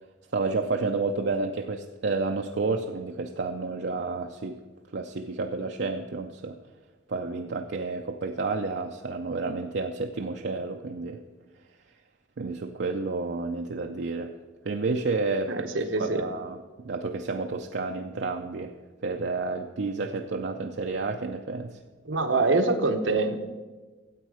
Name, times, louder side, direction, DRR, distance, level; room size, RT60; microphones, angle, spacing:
voice 1, 0.3-4.6 4.9-6.6 7.1-11.2 12.4-14.3 14.6-15.7 16.0-18.7 19.0-21.8, right 3 dB, 65° right, 3 dB, 0.5 m, -30 dB
voice 2, 15.5-16.2 22.1-23.4, right 3 dB, 90° right, 6 dB, 1.0 m, -24 dB
13.0 x 8.3 x 4.9 m, 1.3 s
head